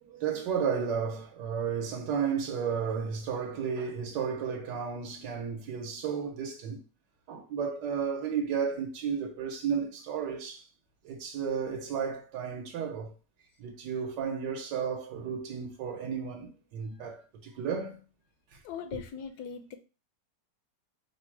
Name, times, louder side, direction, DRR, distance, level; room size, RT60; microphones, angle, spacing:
voice 1, 0.0-6.8 7.3-10.6 11.0-13.1 13.6-18.0 18.5-18.6 18.9-19.0, right 6 dB, 85° right, 1.4 m, -33 dB
voice 2, 18.6-19.8, left 7 dB, 70° left, 1.0 m, -40 dB
4.8 x 2.1 x 4.5 m
omnidirectional pair, 1.9 m